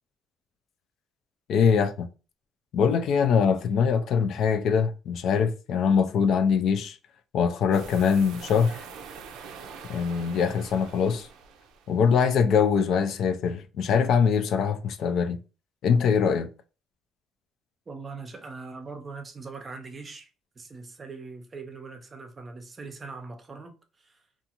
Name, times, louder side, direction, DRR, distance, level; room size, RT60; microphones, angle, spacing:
voice 1, 1.5-2.1 2.7-7.0 7.3-8.8 9.9-11.3 11.9-15.4 15.8-16.5, left 6 dB, 65° left, 0.3 m, -23 dB
sound 1, 7.7-12.2, right 6 dB, 85° right, 0.4 m, -44 dB
voice 2, 17.9-20.3 20.6-24.2, right 4 dB, 30° right, 0.5 m, -41 dB
2.5 x 2.4 x 2.8 m
cardioid pair, 105°, 0 cm